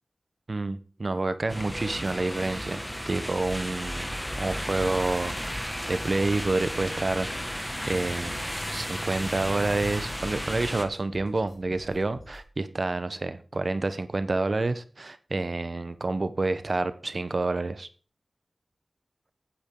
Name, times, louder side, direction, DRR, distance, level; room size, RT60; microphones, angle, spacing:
voice 1, 0.5-7.5 7.9-17.9, right 2 dB, 55° right, 0.9 m, -29 dB
sound 1, 1.5-10.8, equal, 5° left, 1.8 m, -34 dB
sound 2, 1.9-12.4, left 1 dB, 80° left, 3.6 m, -49 dB
15.5 x 8.8 x 3.8 m
wide cardioid pair, 60°, 0 cm